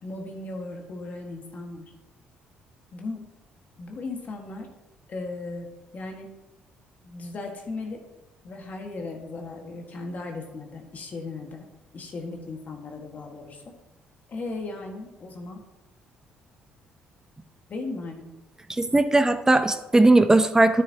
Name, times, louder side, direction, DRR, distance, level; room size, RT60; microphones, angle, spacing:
voice 1, 0.0-1.9 2.9-3.3 3.8-4.7 5.1-6.3 7.0-8.0 8.4-11.7 11.9-13.6 14.3-15.6 17.7-18.3, left 3 dB, 50° left, 2 dB, 1.7 m, -36 dB
voice 2, 18.7-20.8, right 2 dB, 15° right, 9 dB, 0.7 m, -18 dB
9.5 x 9.2 x 2.9 m, 1.0 s
supercardioid pair, 70°, 4 cm